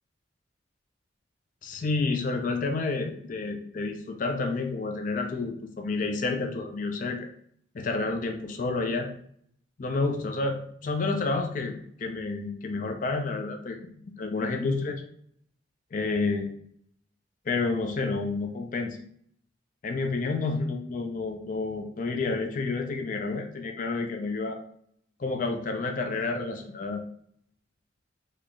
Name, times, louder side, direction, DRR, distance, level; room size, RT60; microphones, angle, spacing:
voice 1, 1.6-7.3 7.7-9.1 9.8-15.0 15.9-16.6 17.5-19.0 19.8-24.6 25.2-27.0, left 3 dB, 40° left, 4 dB, 0.4 m, -30 dB
3.1 x 2.3 x 3.8 m, 0.65 s
head